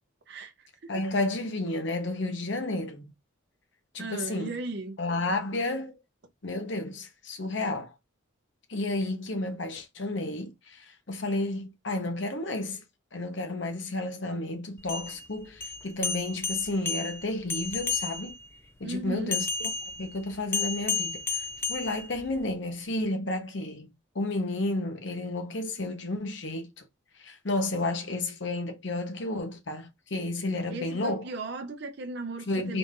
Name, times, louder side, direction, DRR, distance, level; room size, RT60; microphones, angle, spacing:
voice 1, 0.9-3.1 3.9-4.6 5.0-6.0 6.4-7.9 8.7-12.8 13.1-18.4 18.8-19.7 20.0-26.9 27.2-31.3 32.5-32.8, left 2 dB, 60° left, 0.9 m, -32 dB
voice 2, 4.0-5.0 18.8-19.4 30.7-32.8, right 2 dB, 55° right, 0.6 m, -36 dB
sound 1, 14.8-18.5 19.3-22.5, left 5 dB, 10° left, 0.3 m, -32 dB
4.0 x 2.5 x 3.6 m
head